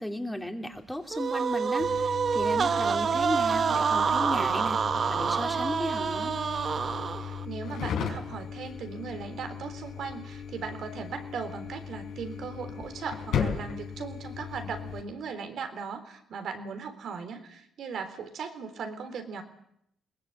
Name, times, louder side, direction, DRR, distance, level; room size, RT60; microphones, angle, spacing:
voice 1, 0.0-6.3, left 1 dB, 5° left, 4 dB, 3.1 m, -35 dB
sound 1, 1.1-7.5, right 6 dB, 50° right, 0.9 m, -27 dB
sound 2, 1.8-15.0, left 7 dB, 80° left, 4.9 m, -37 dB
voice 2, 7.2-19.4, right 5 dB, 65° right, 8 dB, 3.6 m, -38 dB
21.5 x 19.5 x 8.7 m, 0.74 s
cardioid pair, 90°, 0 cm